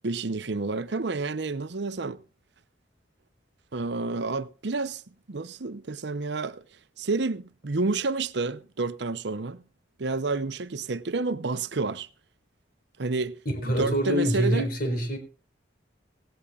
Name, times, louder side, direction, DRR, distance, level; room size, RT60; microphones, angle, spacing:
voice 1, 0.0-2.2 3.7-5.0 5.3-6.6 7.0-9.6 10.0-12.1 13.0-13.4 13.6-14.6, right 3 dB, 65° right, 0.8 m, -29 dB
voice 2, 13.5-15.2, equal, 50° left, 4.2 m, -25 dB
17.5 x 17.0 x 2.4 m
head